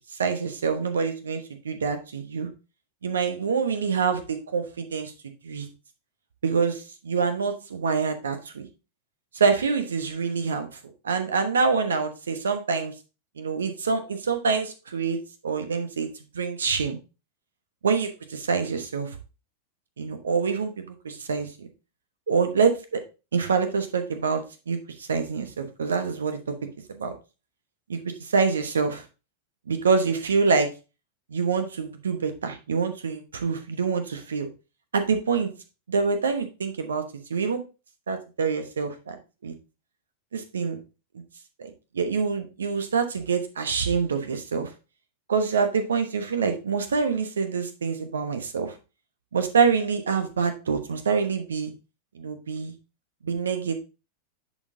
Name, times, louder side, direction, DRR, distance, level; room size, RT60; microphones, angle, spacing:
voice 1, 0.2-2.5 3.0-5.1 5.4-5.7 6.4-8.7 9.3-10.7 11.0-12.9 13.4-15.2 15.4-16.1 16.3-17.0 17.8-19.1 20.0-21.7 22.3-23.0 23.3-26.4 26.9-27.1 27.9-29.0 29.7-30.7 31.3-34.5 34.9-35.5 35.9-37.0 37.3-37.6 38.1-39.5 40.3-40.8 41.6-44.7 45.3-48.7 49.3-51.7 52.1-52.7 53.2-53.8, right 5 dB, 70° right, 8 dB, 1.0 m, -26 dB
10.5 x 4.3 x 2.7 m, 0.30 s
figure-of-eight pair, 90°, 0 cm